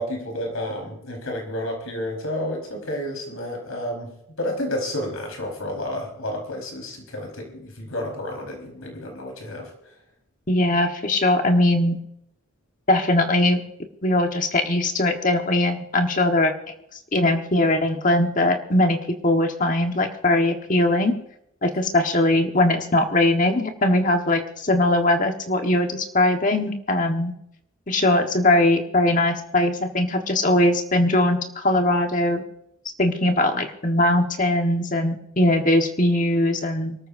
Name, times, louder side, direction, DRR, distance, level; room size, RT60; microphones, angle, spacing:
voice 1, 0.0-9.7, left 1 dB, 80° left, 1 dB, 4.7 m, -31 dB
voice 2, 10.5-12.0 12.9-13.6 14.0-16.5 17.1-19.0 19.2-21.1 21.6-27.3 27.9-32.4 33.0-37.0, left 1 dB, 35° left, 4 dB, 1.4 m, -20 dB
24.5 x 13.5 x 2.7 m, 0.79 s
head